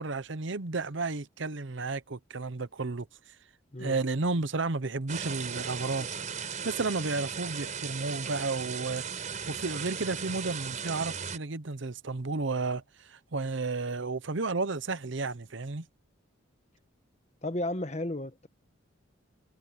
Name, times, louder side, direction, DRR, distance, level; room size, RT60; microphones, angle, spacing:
voice 1, 0.0-3.1 3.8-6.1 6.6-9.0 9.4-15.8, right 3 dB, 65° right, 0.9 m, -32 dB
sound 1, 5.1-11.4, right 6 dB, 35° right, 5.1 m, -37 dB
voice 2, 17.4-18.5, left 1 dB, 35° left, 1.3 m, -33 dB
head